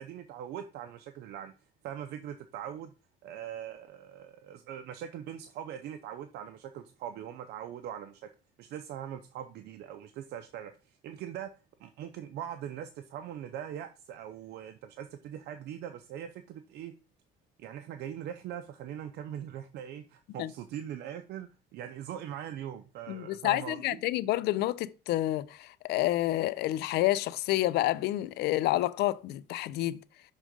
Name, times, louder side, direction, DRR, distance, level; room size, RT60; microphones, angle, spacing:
voice 1, 0.0-1.5 1.8-2.9 3.2-8.3 8.6-11.5 11.8-16.9 17.6-24.0, right 10 dB, 75° right, 0.6 m, -41 dB
voice 2, 23.1-30.0, left 15 dB, 75° left, 0.4 m, -29 dB
6.2 x 3.7 x 5.1 m
cardioid pair, 110°, 17 cm